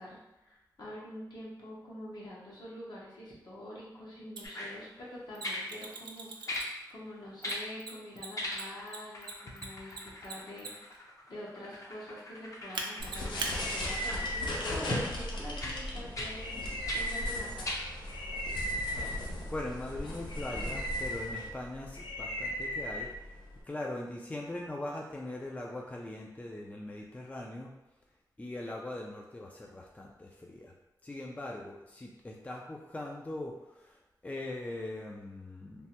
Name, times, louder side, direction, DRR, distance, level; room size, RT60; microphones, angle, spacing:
voice 1, 0.0-6.6 6.9-10.9 11.3-17.7, left 1 dB, 65° left, -6 dB, 1.0 m, -46 dB
sound 1, 4.4-4.7 5.4-5.7 6.5-6.7 7.4-7.7 8.3-8.9 9.1-14.2 14.9-15.1 15.6-15.8 16.1-16.3 16.9-17.0 17.6-17.8 18.5-18.6, left 1 dB, 45° left, 0.7 m, -39 dB
Mechanisms, 4.4-4.5 5.3-6.9 7.4-11.0 12.7-13.5, right 4 dB, 90° right, 0.4 m, -40 dB
sound 2, 13.0-23.6, left 1 dB, 85° left, 0.5 m, -36 dB
voice 2, 19.2-23.4 23.6-27.7 28.4-30.7 31.0-35.9, left 1 dB, 20° left, 0 dB, 0.3 m, -41 dB
3.2 x 2.1 x 2.8 m, 0.98 s
cardioid pair, 60°, 8 cm